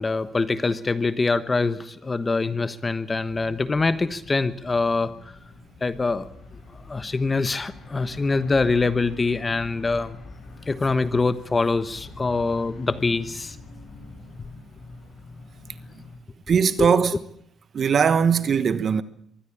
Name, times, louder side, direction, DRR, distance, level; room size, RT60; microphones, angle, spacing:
voice 1, 0.0-5.1 5.8-6.3 6.9-10.2 10.7-13.6 16.8-17.0, left 3 dB, 25° left, 1.2 m, -24 dB
sound 1, 3.3-16.2, left 3 dB, 45° left, 7.9 m, -43 dB
voice 2, 16.5-17.1 17.7-19.0, right 6 dB, 50° right, 1.2 m, -20 dB
22.5 x 15.0 x 8.6 m
cardioid pair, 90°, 0 cm